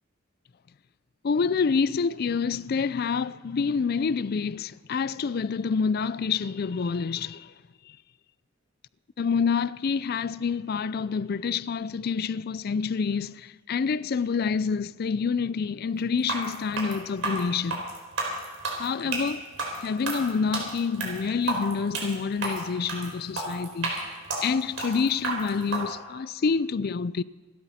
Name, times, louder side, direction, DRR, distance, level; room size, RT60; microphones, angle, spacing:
voice 1, 1.2-7.5 9.2-17.8 18.8-19.4 19.8-23.9 24.4-27.2, left 5 dB, 50° left, 0.4 m, -27 dB
sound 1, 16.2-25.8, right 3 dB, 80° right, 4.4 m, -31 dB
27.0 x 12.5 x 4.2 m
head